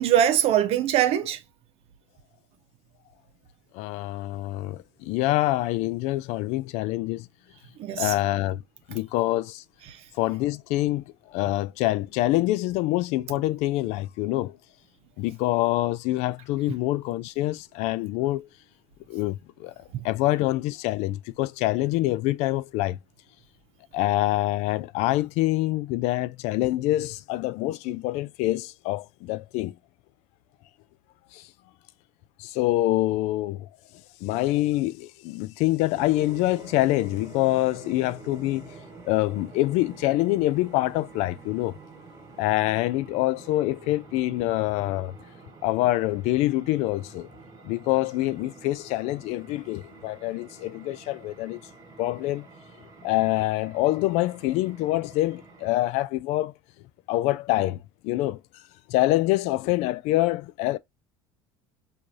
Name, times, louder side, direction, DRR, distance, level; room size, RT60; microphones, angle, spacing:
voice 1, 0.0-1.4 7.8-8.1 9.9-10.0 19.9-20.0, right 11 dB, 55° right, 0.8 m, -22 dB
voice 2, 3.7-7.3 8.0-8.6 8.9-9.6 10.2-11.0 11.3-14.6 15.2-18.5 19.1-19.7 20.0-23.0 23.9-29.7 31.3-31.4 32.4-33.7 34.2-38.7 39.0-41.7 42.4-45.1 45.6-47.3 47.6-51.6 52.0-52.5 53.0-56.5 57.1-57.8 58.0-58.4 58.9-60.8, left 17 dB, 65° left, 0.4 m, -25 dB
sound 1, 35.9-55.8, right 3 dB, 35° right, 1.5 m, -48 dB
4.6 x 2.6 x 2.6 m
supercardioid pair, 120°, 12 cm